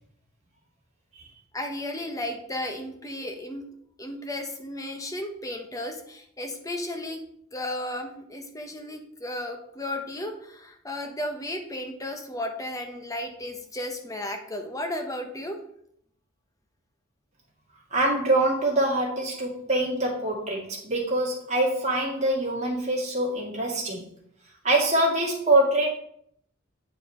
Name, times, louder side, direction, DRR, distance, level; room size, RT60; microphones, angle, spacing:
voice 1, 1.5-3.7 4.0-7.2 7.5-15.6, left 1 dB, 15° left, 4 dB, 0.9 m, -34 dB
voice 2, 17.9-24.1 24.6-25.9, right 1 dB, 35° right, -3 dB, 2.1 m, -24 dB
8.2 x 4.6 x 4.2 m, 0.68 s
head